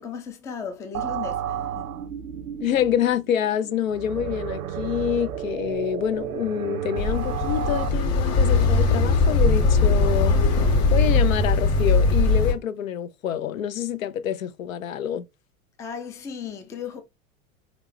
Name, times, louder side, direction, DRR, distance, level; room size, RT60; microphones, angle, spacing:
voice 1, 0.0-1.9 15.8-17.0, left 7 dB, 10° left, 0.3 m, -36 dB
sound 1, 0.9-7.9, right 9 dB, 75° right, 0.6 m, -32 dB
voice 2, 2.6-15.3, left 10 dB, 70° left, 0.6 m, -27 dB
sound 2, 7.0-12.5, left 3 dB, 35° left, 1.6 m, -20 dB
3.9 x 2.9 x 3.1 m
figure-of-eight pair, 80°, 43 cm